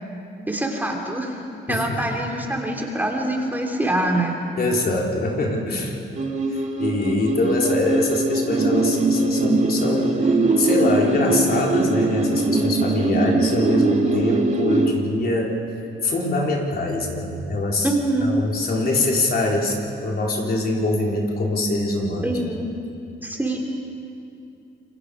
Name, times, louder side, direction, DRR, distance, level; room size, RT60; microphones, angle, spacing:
voice 1, 0.5-1.4 1.7-4.4 17.8-18.3 22.2-22.6 23.2-23.6, right 1 dB, 10° right, 0 dB, 3.3 m, -24 dB
voice 2, 4.6-6.0 6.5-15.5 16.0-17.9 18.2-22.3, left 2 dB, 50° left, -1 dB, 3.9 m, -24 dB
sound 1, 6.1-14.9, right 2 dB, 35° right, 2.5 m, -21 dB
28.5 x 22.5 x 5.0 m, 2.5 s
cardioid pair, 90°, 20 cm